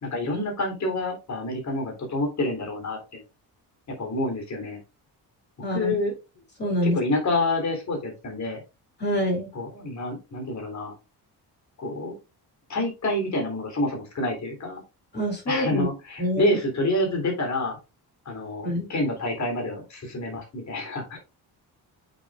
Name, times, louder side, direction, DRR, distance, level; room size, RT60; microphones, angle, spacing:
voice 1, 0.0-3.2 4.0-4.8 5.7-6.1 6.8-8.6 9.5-10.9 11.8-12.1 12.7-14.8 15.5-17.8 18.2-21.2, left 1 dB, 45° left, 2 dB, 3.4 m, -28 dB
voice 2, 5.6-5.9 6.6-7.0 9.0-9.5 15.1-15.9 16.2-16.6 18.6-18.9, equal, 25° left, 1 dB, 3.4 m, -26 dB
8.3 x 6.3 x 2.5 m, 0.27 s
cardioid pair, 135°, 40 cm